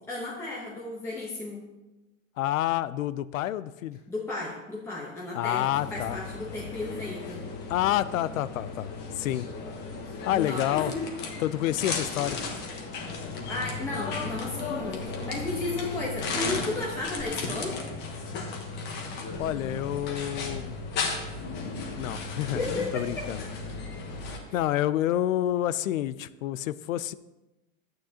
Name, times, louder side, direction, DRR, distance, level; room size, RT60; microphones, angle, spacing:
voice 1, 0.1-1.6 4.1-7.4 10.1-10.7 13.5-17.8 22.5-23.3 24.5-24.6, left 2 dB, 5° left, -5 dB, 0.9 m, -34 dB
voice 2, 2.4-4.0 5.3-6.2 7.7-9.5 10.2-10.9 11.4-12.4 19.4-20.8 22.0-23.4 24.5-27.1, left 13 dB, 75° left, 16 dB, 0.6 m, -28 dB
sound 1, 5.7-24.4, left 4 dB, 25° left, 1.1 m, -35 dB
12.0 x 9.0 x 2.8 m, 1.0 s
supercardioid pair, 155°, 40 cm